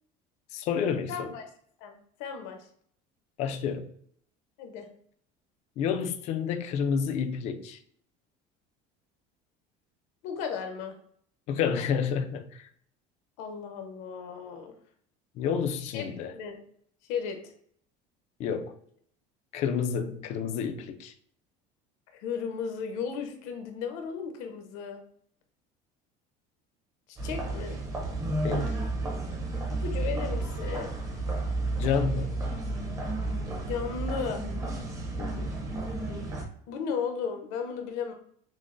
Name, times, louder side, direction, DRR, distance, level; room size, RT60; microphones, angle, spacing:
voice 1, 0.5-1.3 3.4-3.9 5.8-7.8 11.5-12.7 15.4-16.3 18.4-18.7 19.5-21.1 28.4-28.8 31.7-32.3 35.2-35.5, left 7 dB, 40° left, 0.4 m, -30 dB
voice 2, 1.1-1.4 1.8-2.6 4.6-4.9 10.2-10.9 13.4-14.7 15.8-16.0 16.3-16.6 17.1-17.4 20.0-20.2 22.1-25.0 27.1-27.8 29.7-31.0 33.7-34.4 36.7-38.1, left 6 dB, 70° left, 0.8 m, -35 dB
sound 1, 27.2-36.4, right 2 dB, 20° right, 0.6 m, -32 dB
6.0 x 2.0 x 2.5 m
cardioid pair, 170°, 18 cm